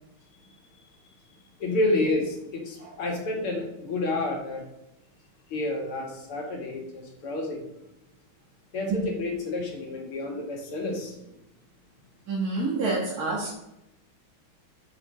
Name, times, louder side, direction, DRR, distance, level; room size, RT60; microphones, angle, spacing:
voice 1, 1.6-4.6 5.5-7.6 8.7-11.2, left 2 dB, 80° left, 0 dB, 2.8 m, -29 dB
voice 2, 12.3-13.5, right 3 dB, 45° right, -4 dB, 1.8 m, -27 dB
8.0 x 5.1 x 6.0 m, 0.88 s
omnidirectional pair, 2.4 m